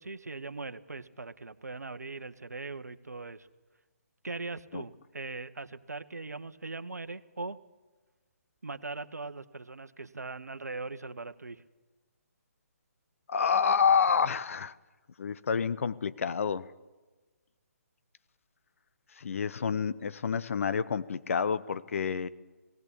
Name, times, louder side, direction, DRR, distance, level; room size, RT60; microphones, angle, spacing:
voice 1, 0.0-3.5 4.2-7.6 8.6-11.6, right 3 dB, 85° right, 10 dB, 1.1 m, -40 dB
voice 2, 13.3-14.7 15.2-16.7 19.2-22.3, left 6 dB, 60° left, 15 dB, 0.9 m, -28 dB
18.5 x 18.0 x 8.4 m, 1.2 s
figure-of-eight pair, 140°, 9 cm